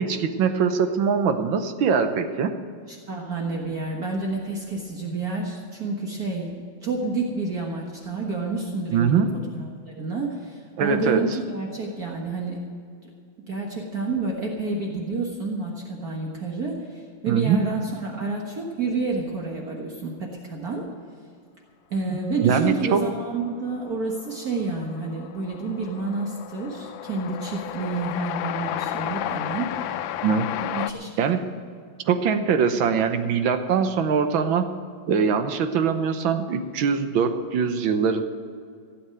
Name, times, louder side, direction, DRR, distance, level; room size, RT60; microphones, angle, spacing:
voice 1, 0.0-2.5 8.9-9.3 10.8-11.2 17.3-17.6 22.1-23.0 30.2-30.5 31.2-31.5 32.1-34.7 35.1-38.2, right 6 dB, 85° right, 8 dB, 1.7 m, -22 dB
voice 2, 2.9-6.5 6.8-9.2 9.5-12.6 13.5-20.8 21.9-29.8 30.6-31.1, right 3 dB, 50° right, -1 dB, 1.9 m, -29 dB
Train, 23.5-23.6 23.8-30.9, left 11 dB, 80° left, 1.3 m, -32 dB
16.0 x 8.0 x 7.7 m, 2.2 s
omnidirectional pair, 2.1 m